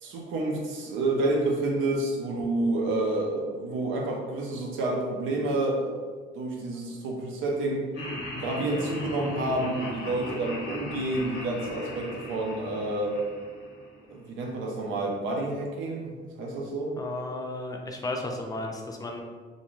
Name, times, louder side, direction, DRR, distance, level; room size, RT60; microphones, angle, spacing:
voice 1, 0.0-5.9 6.3-7.8 8.4-13.2 14.1-16.9, right 2 dB, 90° right, 0 dB, 0.6 m, -29 dB
Laughter, 7.9-14.1, left 1 dB, 85° left, 0.7 m, -37 dB
voice 2, 17.0-19.2, left 2 dB, 20° left, 2 dB, 0.4 m, -34 dB
2.5 x 2.2 x 3.0 m, 1.5 s
cardioid pair, 90°, 20 cm